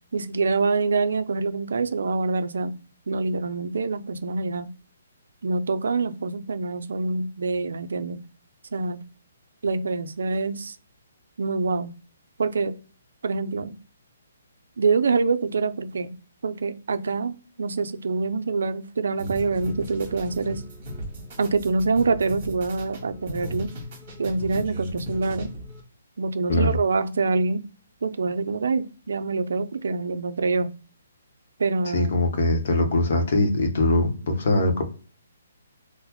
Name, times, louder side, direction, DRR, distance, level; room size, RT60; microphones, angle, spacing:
voice 1, 0.1-2.7 3.1-4.7 5.4-8.2 8.7-9.0 9.6-10.8 11.4-11.9 12.4-12.7 13.2-13.8 14.8-16.1 16.4-17.3 17.6-20.6 21.4-23.7 24.2-25.5 26.2-27.6 28.0-30.7 31.6-32.1, right 4 dB, 65° right, 0.4 m, -25 dB
sound 1, 19.2-25.8, equal, 25° right, 1.6 m, -36 dB
voice 2, 31.9-34.8, left 2 dB, 40° left, 0.9 m, -22 dB
3.9 x 2.1 x 3.0 m
hypercardioid pair, 175°, 0 cm